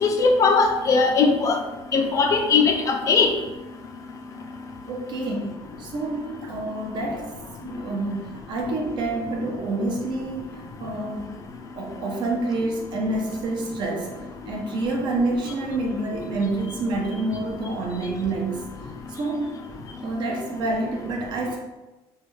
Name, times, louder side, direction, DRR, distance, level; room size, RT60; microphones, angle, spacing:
voice 1, 0.0-1.6 1.9-3.3, left 4 dB, 35° left, 4 dB, 0.3 m, -19 dB
voice 2, 4.9-7.3 7.6-11.4 11.7-14.2 14.5-18.7 19.2-19.5 20.0-21.6, right 2 dB, 50° right, 0 dB, 0.7 m, -28 dB
3.2 x 2.3 x 3.1 m, 1.1 s
cardioid pair, 145°, 10 cm